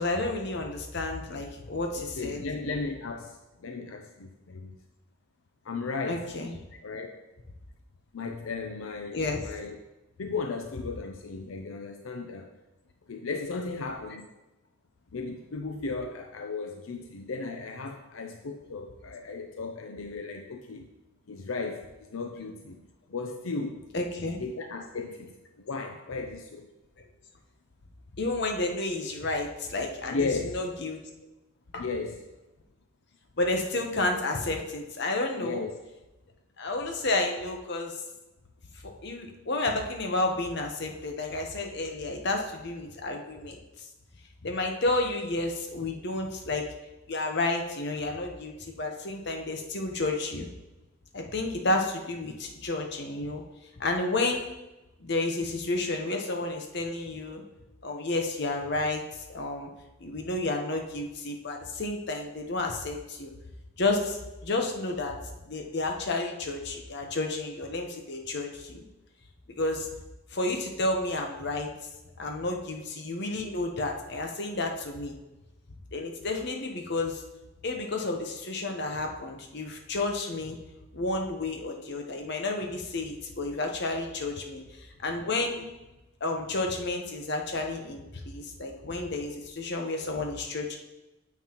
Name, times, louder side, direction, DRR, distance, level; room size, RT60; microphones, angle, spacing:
voice 1, 0.0-2.4 6.1-6.6 9.1-9.4 23.9-24.4 28.2-31.0 31.7-31.8 33.4-35.6 36.6-38.0 38.7-43.9 44.4-46.6 47.1-50.5 51.1-53.4 53.8-54.5 55.0-57.4 57.8-59.7 60.0-63.3 63.8-65.2 65.4-68.8 69.6-69.9 70.3-71.7 72.2-75.2 75.9-77.2 77.6-80.6 80.9-85.6 86.2-90.8, left 2 dB, 55° left, 2 dB, 1.0 m, -31 dB
voice 2, 1.9-4.7 5.6-6.3 6.8-7.2 8.1-9.8 10.2-12.5 13.1-14.3 15.1-20.9 21.3-22.8 23.1-23.8 24.4-26.7 30.1-30.6 31.8-32.2 35.4-35.7, left 4 dB, 80° left, 4 dB, 0.6 m, -35 dB
9.3 x 7.0 x 3.0 m, 1.0 s
head